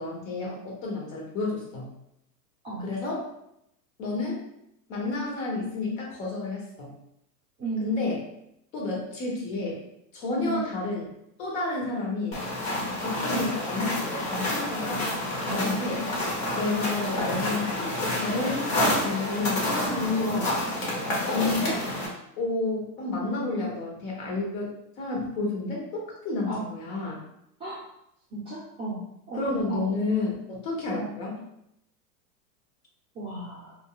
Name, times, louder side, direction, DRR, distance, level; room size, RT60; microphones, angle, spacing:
voice 1, 0.0-1.9 2.8-3.2 4.0-4.4 4.9-6.9 7.8-8.2 8.7-9.8 10.1-11.0 11.4-12.4 13.0-15.1 15.5-16.0 16.5-20.5 21.3-21.8 22.4-27.2 29.3-31.4, left 3 dB, 50° left, -3 dB, 1.3 m, -30 dB
sound 1, 12.3-22.1, left 1 dB, 30° left, 1.0 m, -29 dB
voice 2, 20.1-20.5 21.0-21.3 26.5-26.6 27.6-27.8 28.3-29.4 29.7-29.9 31.0-31.1 33.1-33.7, right 3 dB, 10° right, -10 dB, 0.5 m, -34 dB
2.4 x 2.2 x 3.8 m, 0.79 s
hypercardioid pair, 135°, 50 cm